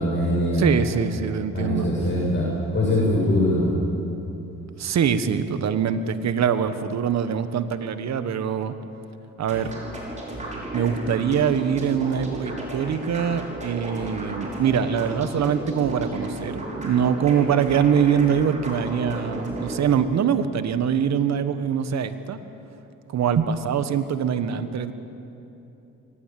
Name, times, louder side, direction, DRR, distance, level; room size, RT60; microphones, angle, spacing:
voice 1, 0.0-0.8 1.5-2.4 2.7-3.7, left 1 dB, 40° left, -5 dB, 7.4 m, -22 dB
voice 2, 0.6-1.9 4.8-8.7 9.4-9.7 10.7-22.4 23.1-24.9, right 7 dB, 60° right, 11 dB, 1.4 m, -23 dB
sound 1, 9.4-19.9, right 1 dB, 25° right, 5.9 m, -33 dB
23.5 x 19.0 x 7.6 m, 2.9 s
cardioid pair, 90°, 30 cm